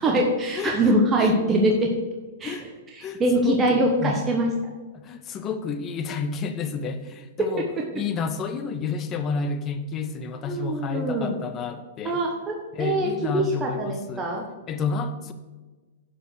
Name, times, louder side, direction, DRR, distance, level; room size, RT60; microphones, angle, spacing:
voice 1, 0.0-1.9 2.4-2.6 2.9-4.5 7.4-7.5 7.8-7.9 10.4-11.4 12.0-14.4, right 1 dB, 15° right, 0 dB, 1.2 m, -23 dB
voice 2, 0.5-1.4 2.4-2.7 3.0-4.2 4.9-7.7 7.9-12.2 12.7-14.3 14.7-15.3, left 5 dB, 25° left, 9 dB, 0.9 m, -30 dB
10.5 x 5.1 x 6.7 m, 1.2 s
hypercardioid pair, 145°, 0 cm